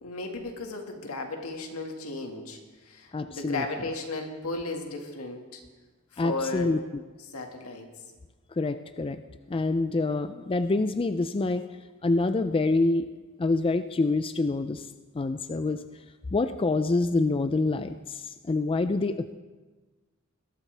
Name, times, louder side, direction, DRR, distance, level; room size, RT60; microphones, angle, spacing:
voice 1, 0.0-2.6 2.9-5.6 6.1-6.7 7.3-7.9, left 3 dB, 80° left, 3 dB, 1.9 m, -35 dB
voice 2, 3.1-3.6 6.2-6.8 8.6-9.2 9.5-11.6 12.0-13.0 13.4-14.9 15.2-15.8 16.3-19.4, left 3 dB, 25° left, 9 dB, 0.4 m, -26 dB
21.5 x 12.5 x 3.4 m, 1.3 s
head